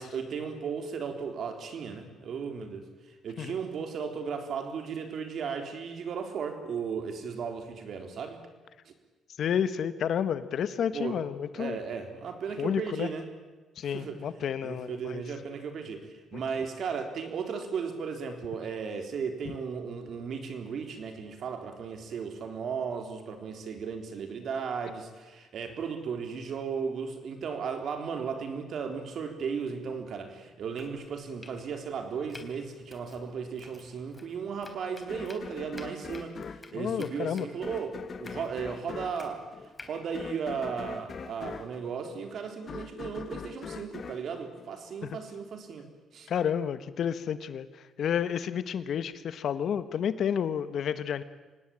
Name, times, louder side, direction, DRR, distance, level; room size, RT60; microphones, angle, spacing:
voice 1, 0.0-8.4 8.9-9.0 10.9-11.2 11.5-13.2 13.8-36.4 36.7-39.5 39.8-46.3, right 6 dB, 60° right, 6 dB, 3.8 m, -36 dB
voice 2, 9.4-11.8 12.6-13.1 13.8-15.2 16.3-16.4 36.7-37.5 45.0-45.2 46.3-51.2, left 8 dB, 60° left, 13 dB, 1.3 m, -30 dB
Domestic sounds home sounds, 30.6-41.2, left 2 dB, 20° left, 3.5 m, -53 dB
sound 1, 35.1-45.3, left 6 dB, 40° left, 1.2 m, -43 dB
25.5 x 18.5 x 8.8 m, 1.2 s
cardioid pair, 125°, 0 cm